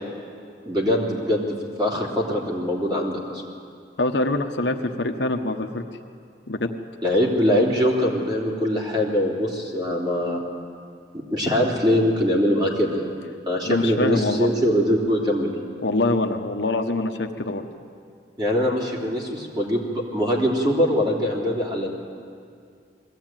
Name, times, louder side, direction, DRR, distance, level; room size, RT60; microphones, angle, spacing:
voice 1, 0.6-3.4 7.0-10.4 11.1-13.1 13.4-15.5 18.4-21.9, equal, 25° right, -3 dB, 3.3 m, -22 dB
voice 2, 4.0-5.9 6.5-6.7 13.6-14.5 15.8-17.7, left 2 dB, 75° left, 5 dB, 1.1 m, -24 dB
21.5 x 15.5 x 9.1 m, 2.3 s
head